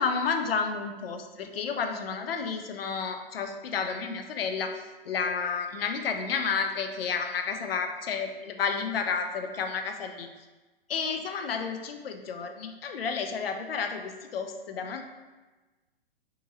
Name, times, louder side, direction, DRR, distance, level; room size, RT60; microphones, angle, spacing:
voice 1, 0.0-10.3 10.9-15.0, left 5 dB, 75° left, 6 dB, 0.5 m, -31 dB
3.7 x 2.7 x 2.7 m, 1.2 s
figure-of-eight pair, 115°, 30 cm